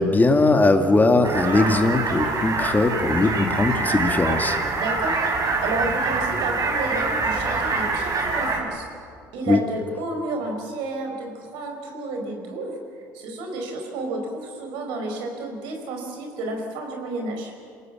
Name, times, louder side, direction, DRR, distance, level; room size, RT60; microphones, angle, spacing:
voice 1, 0.0-4.6 9.5-9.6, left 2 dB, 20° left, 5 dB, 2.2 m, -19 dB
sound 1, 1.2-8.6, right 3 dB, 45° right, 4.8 m, -25 dB
voice 2, 4.8-8.8 9.3-12.8 13.1-17.5, right 2 dB, 75° right, 3 dB, 4.8 m, -31 dB
28.0 x 17.5 x 7.4 m, 2.3 s
hypercardioid pair, 65°, 9 cm